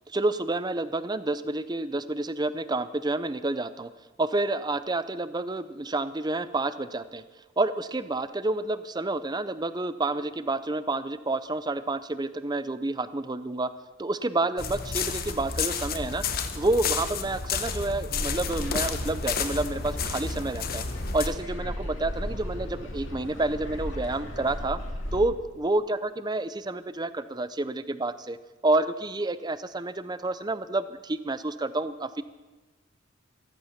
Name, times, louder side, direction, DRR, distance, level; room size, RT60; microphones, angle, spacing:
voice 1, 0.1-3.9 4.2-7.2 7.6-13.7 14.0-16.2 16.6-20.8 21.1-24.8 25.1-28.4 28.6-32.2, right 2 dB, 20° right, 13 dB, 0.6 m, -29 dB
sound 1, 14.6-21.3, left 5 dB, 50° left, 1.1 m, -31 dB
sound 2, 18.1-25.2, left 1 dB, 70° left, 2.5 m, -36 dB
14.5 x 14.0 x 5.9 m, 1.2 s
head